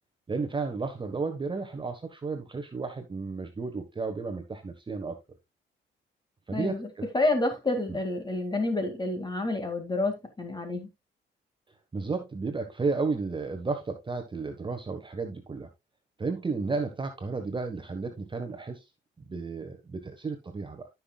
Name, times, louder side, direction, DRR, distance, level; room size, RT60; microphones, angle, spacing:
voice 1, 0.3-5.2 6.5-7.0 7.9-8.0 11.9-15.7 16.2-18.8 19.2-20.9, right 4 dB, 25° right, 1.2 m, -33 dB
voice 2, 6.5-6.9 7.1-10.9, left 2 dB, 20° left, 2.1 m, -29 dB
14.0 x 5.9 x 2.3 m
cardioid pair, 90°, 20 cm